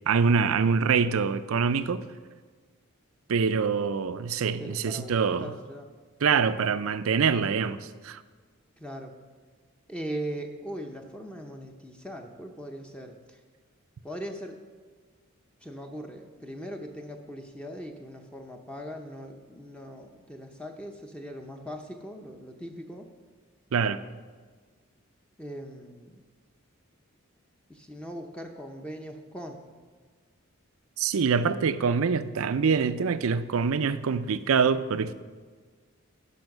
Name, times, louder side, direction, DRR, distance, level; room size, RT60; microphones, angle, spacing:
voice 1, 0.1-2.1 3.3-5.5 6.2-8.2 23.7-24.0 31.0-35.1, right 5 dB, 70° right, 0.4 m, -25 dB
voice 2, 4.6-5.9 8.8-9.1 9.9-13.4 14.0-14.6 15.6-23.1 25.4-26.2 27.7-29.6 31.4-31.7, equal, 5° left, 0.6 m, -40 dB
10.5 x 5.8 x 6.5 m
head